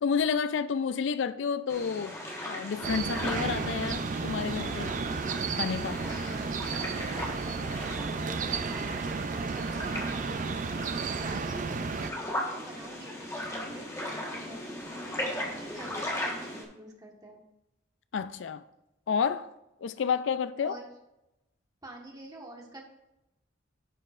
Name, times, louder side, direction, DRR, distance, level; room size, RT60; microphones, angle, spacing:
voice 1, 0.0-4.9 5.5-6.0 18.1-18.6 19.1-19.5 19.8-20.8, left 6 dB, 75° left, 0.4 m, -30 dB
sound 1, 1.7-16.6, left 1 dB, 15° left, 1.4 m, -38 dB
sound 2, 2.8-12.1, right 4 dB, 45° right, 0.4 m, -33 dB
voice 2, 6.0-7.9 8.2-10.6 11.0-17.4 20.6-20.9 21.8-22.8, right 1 dB, 20° right, 1.4 m, -47 dB
10.5 x 7.6 x 2.5 m
head